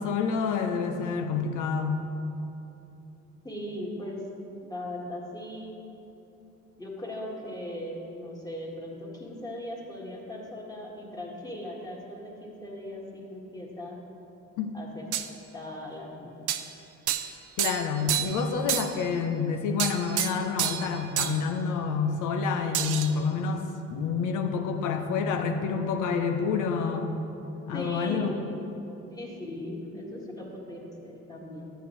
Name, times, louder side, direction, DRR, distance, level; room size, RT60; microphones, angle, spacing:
voice 1, 0.0-2.0 14.6-14.7 17.6-27.2 27.7-28.4, left 5 dB, 90° left, 5 dB, 0.7 m, -28 dB
voice 2, 3.4-4.2 4.6-5.8 6.8-14.0 14.7-16.4 27.7-28.4 29.1-31.7, left 1 dB, 10° left, -3 dB, 1.6 m, -38 dB
sound 1, 15.1-15.3 16.5-16.7 17.1-17.3 17.6-18.4 18.7-19.0 19.8-20.9 21.2-21.4 22.7-23.1, right 11 dB, 90° right, 0.5 m, -29 dB
10.0 x 8.3 x 3.1 m, 2.9 s
cardioid pair, 90°, 30 cm